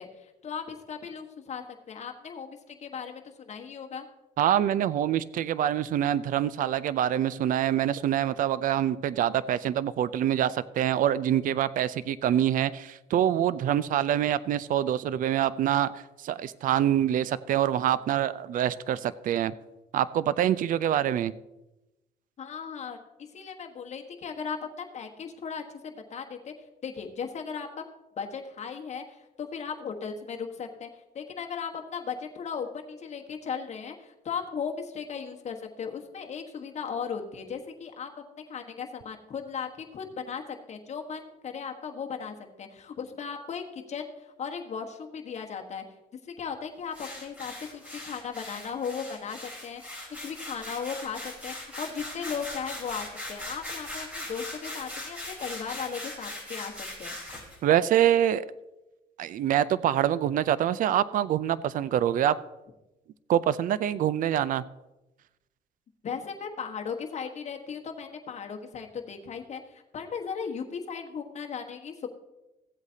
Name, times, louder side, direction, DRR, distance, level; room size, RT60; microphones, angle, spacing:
voice 1, 0.0-4.1 22.4-26.5 26.8-27.7 28.2-30.9 31.1-40.4 40.7-45.8 46.2-57.2 66.0-72.1, left 6 dB, 40° left, 3 dB, 1.3 m, -37 dB
voice 2, 4.4-15.9 16.2-19.5 19.9-21.3 57.6-58.4 59.2-62.3 63.3-64.6, right 11 dB, 55° right, 17 dB, 0.5 m, -25 dB
sound 1, 46.9-57.6, left 1 dB, 10° right, 3.9 m, -40 dB
15.5 x 8.0 x 2.8 m, 0.98 s
cardioid pair, 110°, 17 cm